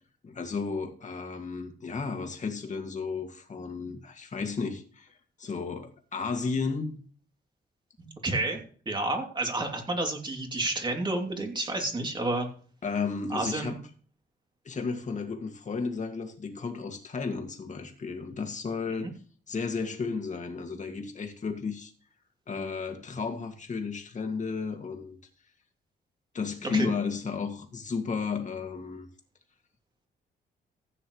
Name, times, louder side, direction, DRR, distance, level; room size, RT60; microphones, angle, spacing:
voice 1, 0.2-7.0 12.8-13.8 14.6-19.1 19.5-21.9 22.5-25.2 26.3-29.1, left 5 dB, 40° left, 2.0 m, -33 dB
voice 2, 8.0-12.5 13.3-13.8 19.0-19.1 26.7-26.9, right 2 dB, 25° right, 2.8 m, -30 dB
15.0 x 9.1 x 3.2 m
cardioid pair, 115°, 18 cm